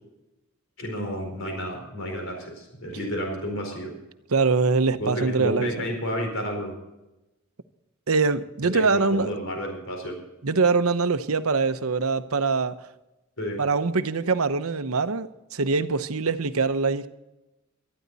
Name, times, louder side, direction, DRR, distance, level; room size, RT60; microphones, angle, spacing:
voice 1, 0.8-3.9 5.0-6.7 8.6-10.2 13.4-13.6, equal, 60° left, 4.5 m, -31 dB
voice 2, 4.3-5.9 8.1-9.3 10.4-12.9 13.6-17.1, right 4 dB, 75° right, 0.9 m, -23 dB
19.0 x 13.0 x 4.1 m
head